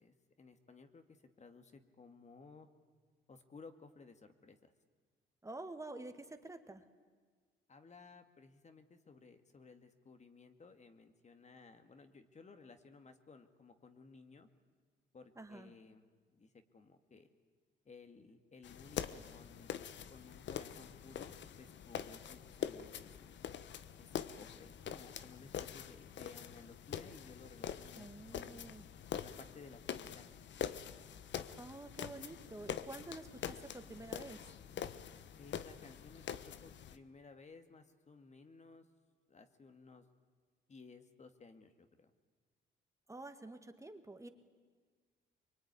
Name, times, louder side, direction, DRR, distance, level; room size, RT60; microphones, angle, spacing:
voice 1, 0.0-2.7 3.3-4.7 7.7-14.5 15.1-16.0 16.3-17.3 17.9-19.8 20.1-23.3 24.0-28.7 29.2-30.3 35.4-38.8 39.3-40.1 40.7-42.1, left 4 dB, 35° left, 8 dB, 2.1 m, -57 dB
voice 2, 5.4-6.8 15.4-15.7 28.0-28.9 31.6-34.4 43.1-44.3, right 2 dB, 15° right, 7 dB, 1.9 m, -49 dB
sound 1, 18.6-37.0, left 9 dB, 65° left, 1.2 m, -45 dB
24.0 x 23.0 x 9.8 m, 1.5 s
cardioid pair, 90°, 20 cm